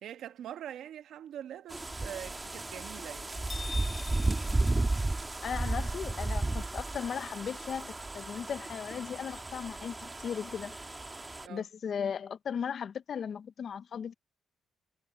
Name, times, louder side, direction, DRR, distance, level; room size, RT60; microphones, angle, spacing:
voice 1, 0.0-3.4 11.4-11.7, right 10 dB, 75° right, 1.4 m, -44 dB
sound 1, 1.7-11.5, right 2 dB, 20° right, 1.4 m, -34 dB
sound 2, 3.5-5.7, left 4 dB, 30° left, 1.3 m, -45 dB
voice 2, 5.4-10.8 11.5-14.1, left 7 dB, 55° left, 0.6 m, -37 dB
cardioid pair, 90°, 0 cm